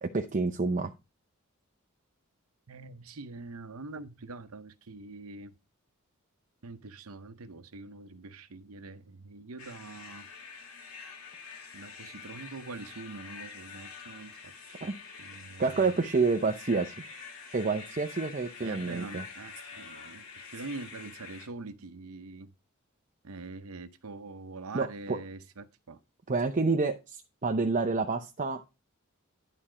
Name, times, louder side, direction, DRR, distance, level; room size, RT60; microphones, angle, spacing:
voice 1, 0.0-0.9 14.8-14.9 15.6-16.9 17.5-19.2 24.7-25.2 26.3-28.6, right 4 dB, 35° right, 0.7 m, -28 dB
voice 2, 2.7-5.5 6.6-10.3 11.7-14.9 15.2-15.9 18.6-22.5 23.2-26.0, right 3 dB, 80° right, 0.8 m, -44 dB
sound 1, 9.6-21.5, left 5 dB, 85° left, 2.1 m, -46 dB
11.0 x 4.3 x 5.0 m
head